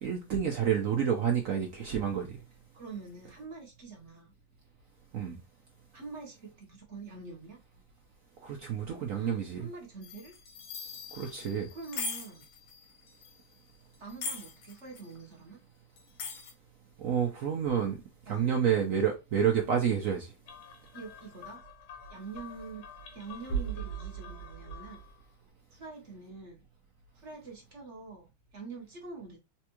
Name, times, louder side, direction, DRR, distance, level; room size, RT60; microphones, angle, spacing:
voice 1, 0.0-2.3 5.1-5.4 8.4-9.7 11.1-11.7 17.0-18.0 18.3-20.3, right 8 dB, 70° right, 0.8 m, -29 dB
voice 2, 2.7-4.3 5.9-7.6 9.1-10.4 11.7-12.4 14.0-15.6 18.3-18.5 20.9-21.6 22.1-22.8 23.1-25.0 25.7-26.7 27.2-29.4, right 4 dB, 45° right, 1.0 m, -45 dB
sound 1, 10.0-13.4 13.9-15.1 16.0-16.5, left 4 dB, 70° left, 1.4 m, -40 dB
sound 2, 20.5-25.2, right 5 dB, 85° left, 1.6 m, -41 dB
4.3 x 2.3 x 2.9 m
omnidirectional pair, 2.1 m